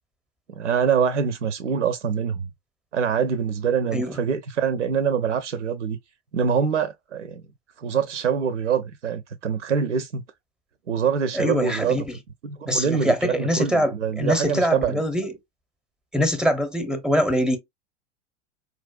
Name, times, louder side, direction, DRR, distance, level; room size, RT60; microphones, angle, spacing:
voice 1, 0.6-2.5 2.9-6.0 6.3-7.4 7.8-10.2 10.9-12.0 12.4-15.0, right 7 dB, 85° right, 0.5 m, -24 dB
voice 2, 11.3-12.2 12.7-15.3 16.1-17.6, equal, ahead, 0.6 m, -23 dB
4.2 x 2.4 x 2.3 m
figure-of-eight pair, 90°, 35 cm